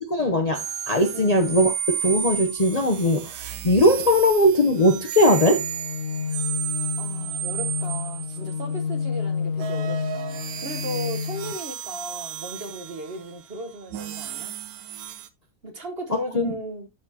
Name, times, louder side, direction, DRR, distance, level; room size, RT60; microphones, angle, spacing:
voice 1, 0.1-5.6 16.3-16.5, left 1 dB, 35° left, 0.7 m, -20 dB
sound 1, 0.5-8.8 9.5-15.3, right 10 dB, 75° right, 1.1 m, -33 dB
sound 2, 5.5-11.5, left 6 dB, 85° left, 1.6 m, -30 dB
voice 2, 7.0-14.6 15.6-16.9, equal, 40° right, 1.4 m, -36 dB
12.0 x 4.4 x 2.8 m
omnidirectional pair, 1.7 m